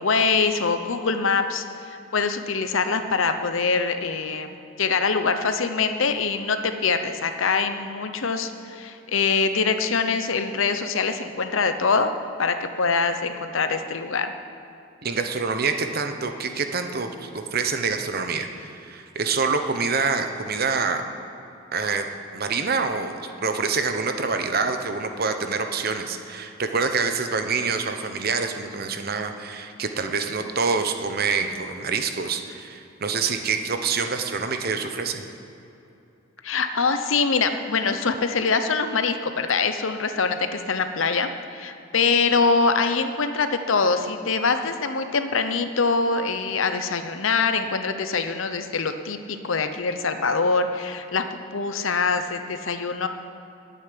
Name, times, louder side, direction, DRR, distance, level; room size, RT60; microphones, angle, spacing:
voice 1, 0.0-12.1 12.4-14.3 36.4-51.2 51.5-53.1, left 4 dB, 70° left, 8 dB, 0.8 m, -24 dB
voice 2, 15.0-21.0 21.7-22.1 22.3-35.3, right 4 dB, 45° right, 6 dB, 0.9 m, -26 dB
10.5 x 8.5 x 9.4 m, 2.8 s
head